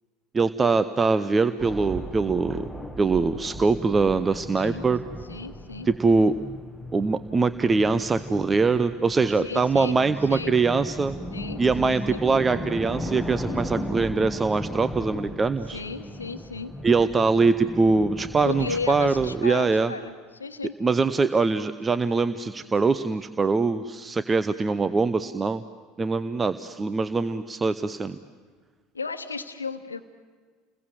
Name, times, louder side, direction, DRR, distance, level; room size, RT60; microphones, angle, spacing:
voice 1, 0.3-2.6 3.0-5.0 5.8-6.3 6.9-11.2 11.6-15.8 16.8-19.9 20.8-25.6 26.0-28.2, right 4 dB, 20° right, 13 dB, 0.7 m, -23 dB
sound 1, 1.6-19.4, equal, ahead, 1.6 m, -36 dB
voice 2, 4.6-4.9 5.3-5.9 9.4-10.0 10.3-10.5 11.3-12.2 15.7-16.7 18.4-20.7 28.9-30.0, left 4 dB, 85° left, 9 dB, 1.2 m, -34 dB
30.0 x 21.5 x 7.5 m, 1.5 s
figure-of-eight pair, 70°, 0 cm